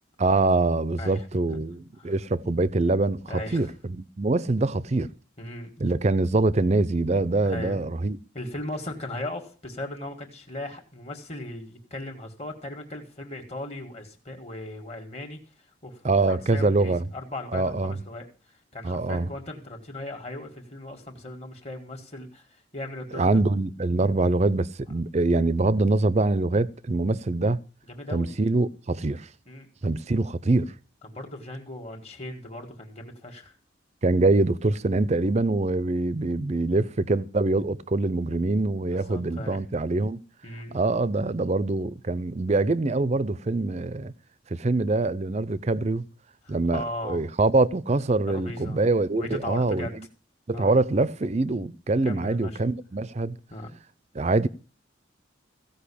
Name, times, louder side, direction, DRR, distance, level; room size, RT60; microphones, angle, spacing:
voice 1, 0.2-5.1 5.8-8.2 16.0-17.1 17.5-18.0 18.8-19.3 23.1-27.6 28.1-29.3 29.8-30.7 34.0-40.2 40.7-44.1 44.5-46.0 46.5-50.1 50.5-53.4 54.1-54.5, right 2 dB, 35° right, 0.5 m, -24 dB
voice 2, 3.3-3.7 5.4-5.8 7.4-7.9 8.3-15.4 15.8-23.4 27.9-28.4 29.5-29.7 31.0-33.6 38.9-39.7 40.4-40.8 46.4-47.3 48.3-48.9 49.1-49.9 50.5-50.8 52.0-52.6 53.5-53.8, left 1 dB, 35° left, 1.8 m, -37 dB
15.5 x 5.4 x 8.5 m
head